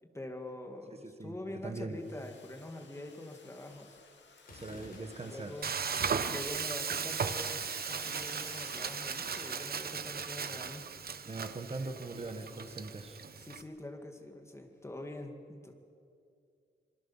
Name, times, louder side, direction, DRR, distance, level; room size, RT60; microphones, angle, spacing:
voice 1, 0.0-4.0 4.6-5.8 6.3-10.9 13.4-15.7, left 1 dB, 15° left, 4 dB, 2.2 m, -45 dB
voice 2, 1.6-2.0 4.5-5.6 11.3-13.2, right 3 dB, 30° right, 6 dB, 1.5 m, -41 dB
Domestic sounds home sounds, 1.9-10.2, left 5 dB, 70° left, 2.8 m, -54 dB
Gunshot gunfire, 4.4-5.6, left 3 dB, 50° left, 5.9 m, -54 dB
Frying (food), 5.6-13.6, right 6 dB, 50° right, 1.0 m, -37 dB
26.5 x 23.0 x 7.3 m, 2.4 s
wide cardioid pair, 170°, 19 cm